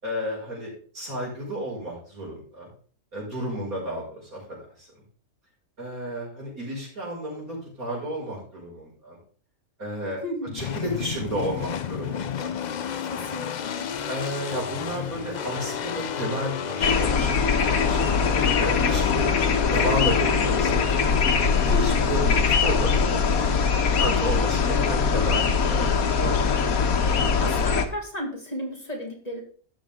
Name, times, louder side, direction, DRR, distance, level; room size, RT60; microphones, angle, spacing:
voice 1, 0.0-2.7 3.1-4.9 5.8-9.2 9.8-10.2 10.5-12.5 14.1-18.3 18.6-19.3 19.7-21.1 21.6-23.6 24.0-26.6, equal, 80° right, -4 dB, 6.5 m, -32 dB
voice 2, 10.2-10.6 13.0-13.9 21.7-22.1 27.4-29.4, equal, 25° left, 0 dB, 2.5 m, -33 dB
sound 1, 10.6-20.9, left 7 dB, 60° left, 0.4 m, -31 dB
sound 2, 16.8-27.9, left 5 dB, 90° left, 1.6 m, -22 dB
12.5 x 8.8 x 3.7 m, 0.43 s
omnidirectional pair, 1.5 m